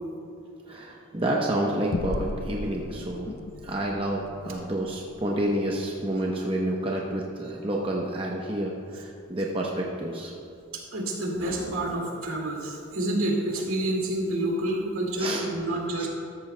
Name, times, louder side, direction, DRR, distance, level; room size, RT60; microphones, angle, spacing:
voice 1, 0.6-3.3 3.6-10.3 15.2-15.5 16.0-16.1, right 1 dB, 25° right, -2 dB, 0.8 m, -29 dB
sound 1, 1.9-6.7, left 2 dB, 45° left, 0.4 m, -37 dB
voice 2, 10.7-16.1, right 1 dB, 65° right, -1 dB, 2.1 m, -28 dB
13.5 x 13.5 x 2.2 m, 2.6 s
head